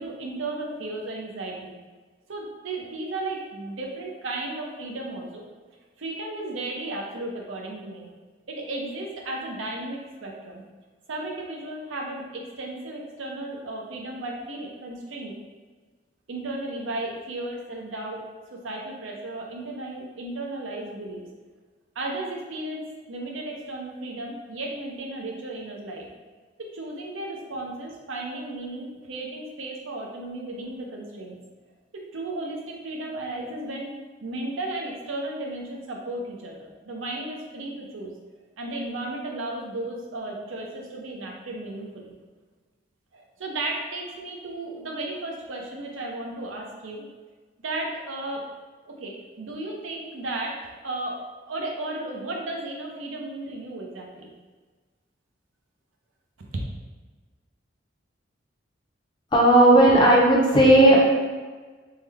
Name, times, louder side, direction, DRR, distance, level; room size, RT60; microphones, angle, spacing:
voice 1, 0.0-1.7 2.3-5.4 6.0-8.1 8.5-10.6 11.1-15.4 16.3-18.2 18.5-21.2 22.0-26.1 26.6-31.4 32.1-33.9 34.2-38.1 38.6-42.1 43.1-47.0 47.6-48.4 48.9-51.2 51.5-54.3 56.5-56.6, right 2 dB, 90° right, -1 dB, 0.6 m, -34 dB
voice 2, 59.3-61.0, right 1 dB, 25° left, -3 dB, 0.5 m, -15 dB
3.5 x 2.1 x 3.4 m, 1.4 s
head